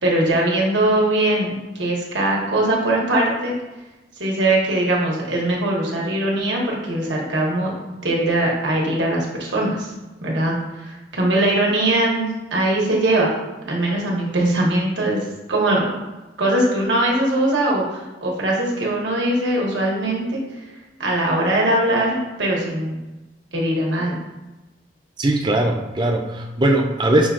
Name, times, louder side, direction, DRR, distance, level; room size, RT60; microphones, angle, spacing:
voice 1, 0.0-3.5 4.2-7.7 8.0-9.9 10.2-13.3 13.7-15.2 15.5-15.9 16.4-20.4 21.0-23.0 23.5-24.2, right 1 dB, 85° right, -3 dB, 1.2 m, -21 dB
voice 2, 25.2-27.3, right 1 dB, 25° right, 3 dB, 0.4 m, -19 dB
5.9 x 2.4 x 3.7 m, 1.1 s
head